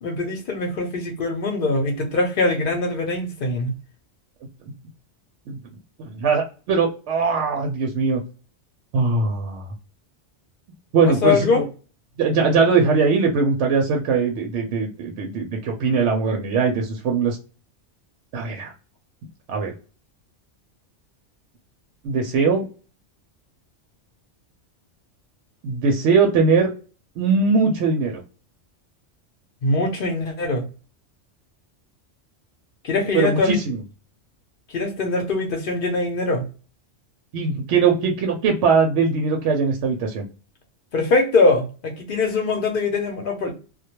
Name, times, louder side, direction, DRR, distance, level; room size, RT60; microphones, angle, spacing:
voice 1, 0.0-3.7 11.0-11.7 29.6-30.7 32.8-33.6 34.7-36.5 40.9-43.5, left 3 dB, 55° left, 0.7 m, -22 dB
voice 2, 6.0-8.2 8.9-9.7 10.9-11.5 12.2-17.4 18.3-18.7 19.5-19.7 22.0-22.6 25.6-26.7 27.2-28.2 33.1-33.8 37.3-40.2, right 4 dB, 75° right, 0.8 m, -20 dB
2.2 x 2.1 x 2.8 m
omnidirectional pair, 1.2 m